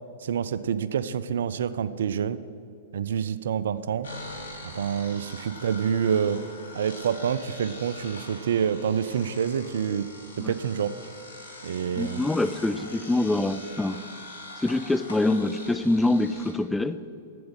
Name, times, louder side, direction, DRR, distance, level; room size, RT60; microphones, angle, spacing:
voice 1, 0.2-2.4 2.9-4.1 4.7-6.4 6.7-10.1 10.5-10.9 11.6-12.2, right 8 dB, 65° right, 15 dB, 0.4 m, -27 dB
shave head, 4.0-16.5, left 2 dB, 75° left, 1.6 m, -43 dB
voice 2, 12.0-14.0 14.6-17.0, left 2 dB, 5° left, 12 dB, 0.3 m, -25 dB
8.0 x 7.8 x 5.2 m, 2.5 s
figure-of-eight pair, 105°, 0 cm